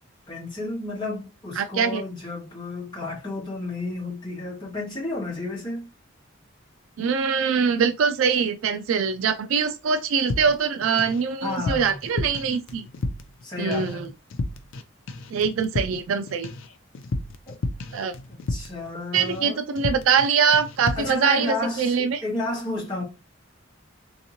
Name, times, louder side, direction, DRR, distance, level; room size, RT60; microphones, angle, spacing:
voice 1, 0.3-5.9 11.4-12.0 13.4-14.1 17.5-17.6 18.5-19.6 21.0-23.0, left 2 dB, 25° left, 1.6 m, -31 dB
voice 2, 1.6-2.0 7.0-12.9 13.6-14.1 15.3-16.5 17.9-18.1 19.1-22.2, right 6 dB, 80° right, 0.3 m, -23 dB
sound 1, 10.3-11.2 11.5-13.4 13.7-14.0 14.3-14.8 15.1-18.9 19.2-19.5 19.8-20.3 20.5-21.2, left 2 dB, 75° left, 0.5 m, -32 dB
3.5 x 2.9 x 2.8 m
head